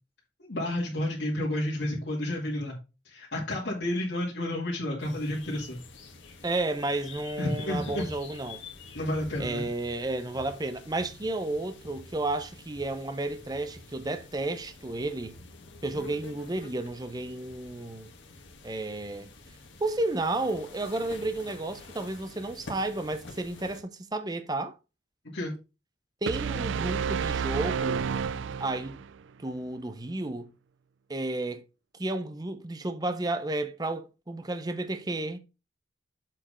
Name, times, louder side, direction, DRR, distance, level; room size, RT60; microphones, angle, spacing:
voice 1, 0.4-2.8 3.1-5.8 7.4-8.0 8.9-9.7 25.3-25.6, left 1 dB, 70° left, 2.2 m, -31 dB
sound 1, 5.0-23.8, left 3 dB, 90° left, 1.8 m, -48 dB
voice 2, 6.4-8.6 9.4-15.4 15.8-18.1 18.6-19.3 19.8-24.7 26.2-29.0 29.4-30.5 31.1-31.6 32.0-35.4, right 2 dB, 20° right, 0.6 m, -32 dB
sound 2, 26.3-29.2, right 6 dB, 90° right, 0.4 m, -30 dB
7.4 x 4.5 x 5.0 m
head